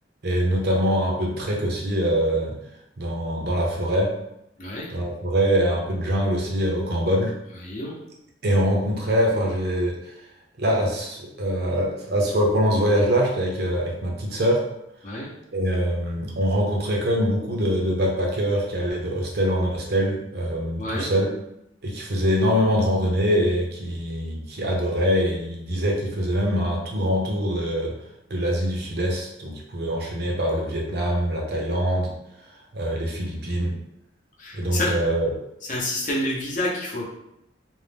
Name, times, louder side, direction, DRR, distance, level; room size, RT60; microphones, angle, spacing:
voice 1, 0.2-2.6 3.0-4.1 4.9-7.3 8.4-10.2 10.6-14.6 15.5-21.3 21.8-28.0 28.3-32.1 32.7-33.7 34.5-35.3, equal, 60° right, -1 dB, 0.6 m, -23 dB
voice 2, 7.5-8.0 15.0-15.3 20.8-21.1 34.4-34.9 35.6-37.0, left 1 dB, 45° left, -4 dB, 0.8 m, -28 dB
2.6 x 2.0 x 3.3 m, 0.81 s
head